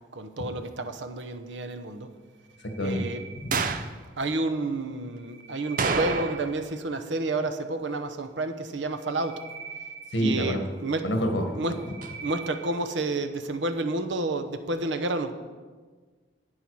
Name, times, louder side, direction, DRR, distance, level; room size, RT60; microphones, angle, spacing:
voice 1, 0.2-2.1 2.8-3.2 4.2-9.4 10.2-11.0 11.6-11.7 12.2-15.3, right 2 dB, 85° right, 9 dB, 0.8 m, -30 dB
sound 1, 2.3-4.0 5.0-6.8 8.8-10.9 11.4-12.9, right 5 dB, ahead, 3.3 m, -43 dB
voice 2, 2.6-3.1 3.4-3.8 10.1-10.7 11.0-11.9, equal, 75° left, 4 dB, 1.4 m, -28 dB
sound 2, 3.5-3.9 5.8-6.6 6.9-7.0 12.0-12.1, right 4 dB, 45° right, 0.6 m, -28 dB
11.0 x 8.9 x 4.7 m, 1.4 s
head